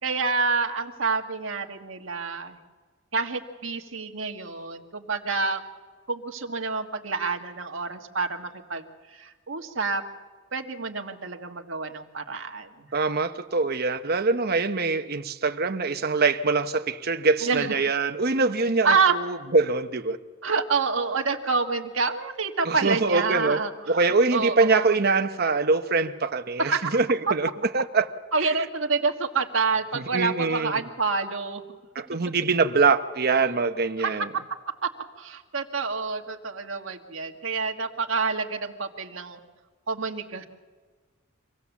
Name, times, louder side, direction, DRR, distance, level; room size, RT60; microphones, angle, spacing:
voice 1, 0.0-2.6 3.1-5.6 6.1-8.8 9.1-10.0 10.5-12.9 17.4-17.7 18.8-19.1 20.4-24.0 24.3-25.0 26.6-26.9 28.3-31.6 34.0-34.2 34.8-34.9 35.2-39.4 39.9-40.4, right 4 dB, 65° right, 1.6 m, -27 dB
voice 2, 12.9-20.2 22.6-23.6 23.9-27.5 27.7-28.1 28.4-28.5 29.9-30.7 31.9-34.3, right 4 dB, 50° right, 1.0 m, -24 dB
25.5 x 17.0 x 7.2 m
head